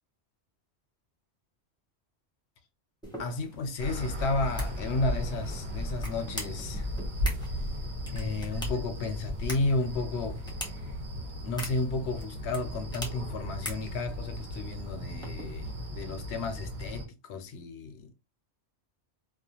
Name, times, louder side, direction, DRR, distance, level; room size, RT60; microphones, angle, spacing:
sound 1, 3.0-15.9, equal, 5° left, 0.6 m, -45 dB
voice 1, 3.2-6.9 8.1-10.4 11.4-18.1, left 2 dB, 75° left, 0.8 m, -32 dB
sound 2, 3.8-17.0, equal, 65° right, 1.0 m, -36 dB
2.4 x 2.1 x 2.8 m
omnidirectional pair, 1.1 m